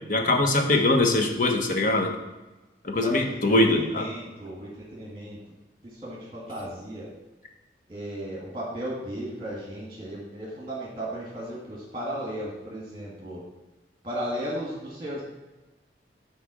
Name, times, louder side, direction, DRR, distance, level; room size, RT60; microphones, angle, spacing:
voice 1, 0.1-2.1 2.8-4.0, left 2 dB, 45° left, 3 dB, 1.2 m, -22 dB
voice 2, 2.9-5.4 5.8-7.1 7.9-13.4 14.0-15.2, equal, 25° right, -5 dB, 2.0 m, -35 dB
10.0 x 4.4 x 6.2 m, 1.1 s
head